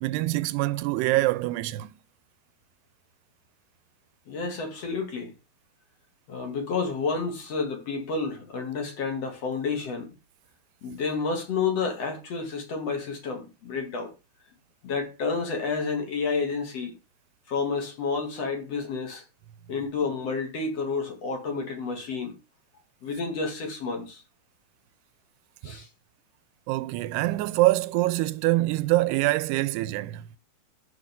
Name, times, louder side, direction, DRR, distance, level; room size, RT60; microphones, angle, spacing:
voice 1, 0.0-1.9 25.6-25.8 26.7-30.2, right 18 dB, 90° right, 2.8 m, -25 dB
voice 2, 4.3-5.3 6.3-10.1 10.8-14.1 14.8-16.9 17.5-19.2 19.7-22.4 23.0-24.2 25.6-25.9, left 4 dB, 45° left, 3.3 m, -30 dB
14.5 x 6.6 x 3.7 m
omnidirectional pair, 4.6 m